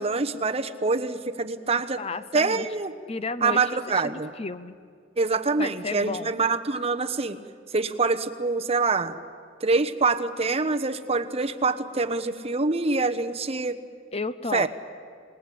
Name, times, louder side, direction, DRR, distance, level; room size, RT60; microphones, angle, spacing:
voice 1, 0.0-2.0 2.3-2.9 3.4-4.3 5.2-7.4 7.7-9.2 9.6-13.8 14.5-14.7, right 3 dB, 30° right, 8 dB, 1.0 m, -25 dB
voice 2, 2.0-2.7 3.1-3.6 4.0-4.8 5.6-6.4 14.1-14.7, left 3 dB, 30° left, 14 dB, 0.6 m, -32 dB
27.5 x 19.5 x 8.5 m, 2.1 s
head